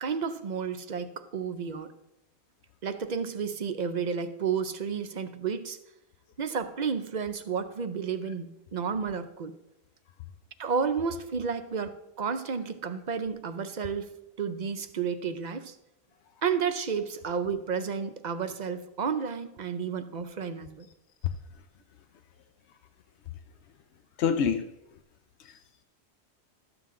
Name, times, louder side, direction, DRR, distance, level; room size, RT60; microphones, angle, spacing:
voice 1, 0.0-1.9 2.8-5.8 6.4-9.5 10.6-14.1 14.4-15.7 16.4-20.9, right 6 dB, 50° right, 10 dB, 0.6 m, -31 dB
voice 2, 24.2-24.7 25.4-25.8, left 7 dB, 85° left, 8 dB, 0.9 m, -28 dB
12.5 x 7.5 x 3.7 m, 0.88 s
omnidirectional pair, 1.1 m